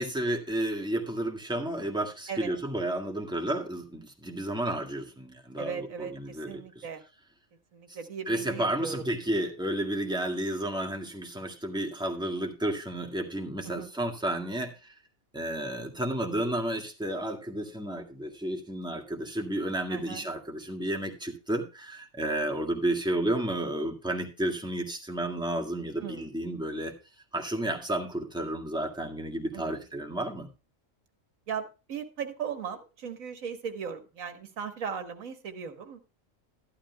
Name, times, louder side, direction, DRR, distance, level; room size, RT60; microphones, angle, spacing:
voice 1, 0.0-6.8 8.3-14.9 15.3-26.9 27.3-30.5, right 1 dB, 5° right, 1 dB, 1.7 m, -32 dB
voice 2, 2.3-2.6 5.6-7.0 7.7-9.0 13.7-13.9 19.9-20.2 26.0-26.3 29.5-29.8 31.5-36.0, right 7 dB, 85° right, 8 dB, 1.7 m, -38 dB
13.5 x 11.5 x 2.2 m, 0.31 s
omnidirectional pair, 1.4 m